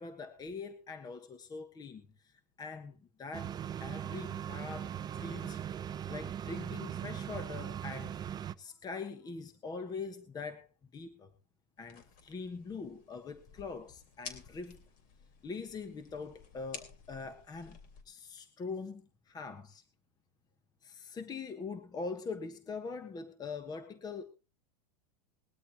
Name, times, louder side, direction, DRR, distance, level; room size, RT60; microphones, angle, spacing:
voice 1, 0.0-2.3 2.6-5.6 6.1-8.2 8.6-10.7 10.9-11.3 11.8-14.8 15.4-17.8 18.0-19.8 20.8-24.2, left 4 dB, 20° left, 10 dB, 1.3 m, -43 dB
sound 1, 3.3-8.5, right 9 dB, 20° right, 0.6 m, -39 dB
sound 2, 11.8-18.0, left 6 dB, 40° left, 3.1 m, -52 dB
20.5 x 12.5 x 2.9 m, 0.30 s
supercardioid pair, 135°, 21 cm